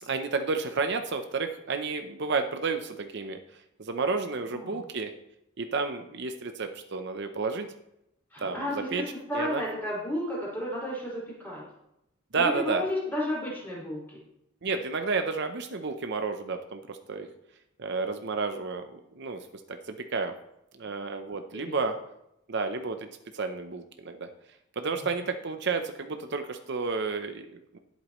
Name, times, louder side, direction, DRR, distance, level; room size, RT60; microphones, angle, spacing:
voice 1, 0.0-3.4 3.8-5.1 5.6-7.7 8.4-8.6 8.9-9.0 9.3-9.6 12.3-12.8 14.6-17.3 17.8-20.3 20.8-22.0 22.5-23.1 23.3-24.3 24.8-27.8, right 4 dB, 55° right, 7 dB, 0.7 m, -31 dB
voice 2, 4.5-4.8 8.3-11.6 12.3-14.2 21.6-21.8, left 1 dB, 10° left, -6 dB, 5.3 m, -33 dB
19.0 x 8.3 x 3.1 m, 0.83 s
head